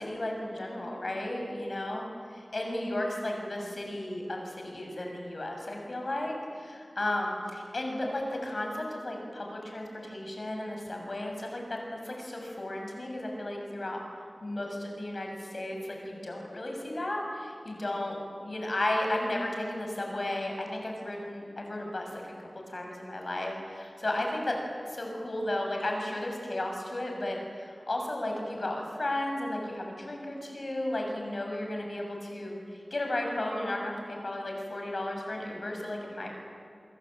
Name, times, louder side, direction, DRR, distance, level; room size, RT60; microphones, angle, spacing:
voice 1, 0.0-2.1 2.3-14.0 14.4-24.6 24.9-32.6 32.9-36.3, left 1 dB, 65° left, 1 dB, 7.1 m, -34 dB
29.0 x 22.5 x 9.0 m, 2.4 s
wide cardioid pair, 55°, 0 cm